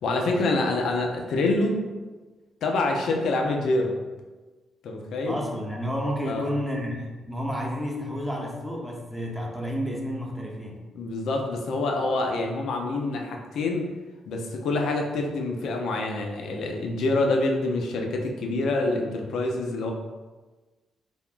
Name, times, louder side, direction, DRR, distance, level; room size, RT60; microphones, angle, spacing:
voice 1, 0.0-1.8 2.6-3.9 4.8-5.4 6.3-6.4 10.9-13.9 14.3-19.9, left 2 dB, 75° left, 2 dB, 0.4 m, -26 dB
voice 2, 5.3-10.8, equal, ahead, -2 dB, 0.7 m, -31 dB
3.4 x 2.2 x 2.4 m, 1.3 s
supercardioid pair, 60°, 0 cm